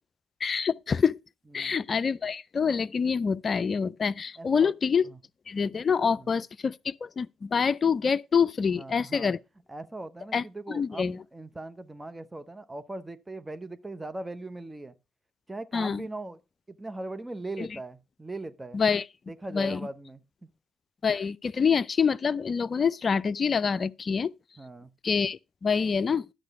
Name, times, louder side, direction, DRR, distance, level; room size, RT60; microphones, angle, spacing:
voice 1, 0.4-1.2 1.5-5.0 5.5-9.4 10.3-11.2 15.7-16.0 17.6-17.7 18.7-19.0 19.5-19.8 21.0-24.3 25.0-26.3, left 6 dB, 45° left, 0.4 m, -26 dB
voice 2, 4.4-4.7 5.0-5.2 6.1-6.4 8.7-9.3 9.7-14.9 15.5-16.4 16.7-18.8 19.3-20.5 24.6-24.9, right 2 dB, 20° right, 1.0 m, -39 dB
11.0 x 6.5 x 4.7 m
hypercardioid pair, 50°, 0 cm